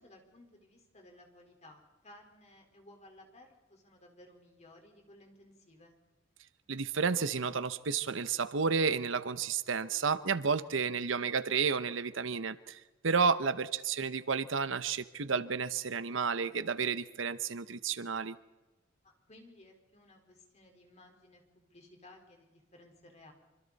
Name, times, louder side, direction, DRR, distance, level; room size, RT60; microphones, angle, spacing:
voice 1, 0.0-6.0 19.0-23.3, left 1 dB, 35° left, 2 dB, 4.3 m, -58 dB
voice 2, 6.7-18.4, right 5 dB, 70° right, 14 dB, 0.9 m, -31 dB
26.0 x 25.5 x 4.1 m, 1.1 s
head